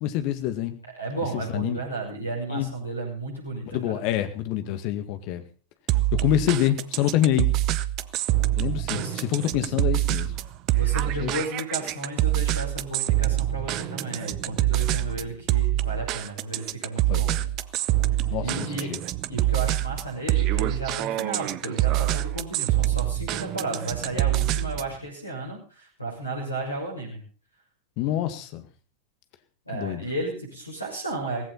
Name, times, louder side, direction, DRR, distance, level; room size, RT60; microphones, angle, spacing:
voice 1, 0.0-0.8 1.3-1.8 2.5-2.7 3.7-5.4 6.1-7.5 8.6-10.3 11.2-11.3 17.1-17.5 18.3-19.0 28.0-28.6 29.7-30.0, left 12 dB, 45° left, 9 dB, 2.0 m, -26 dB
voice 2, 1.0-3.7 8.9-9.2 10.7-17.3 18.4-19.0 19.3-27.2 29.7-31.5, right 2 dB, 85° left, -2 dB, 6.5 m, -33 dB
sound 1, 5.9-25.0, right 15 dB, 40° right, 0.8 m, -25 dB
17.5 x 16.0 x 4.2 m, 0.38 s
figure-of-eight pair, 90°, 0 cm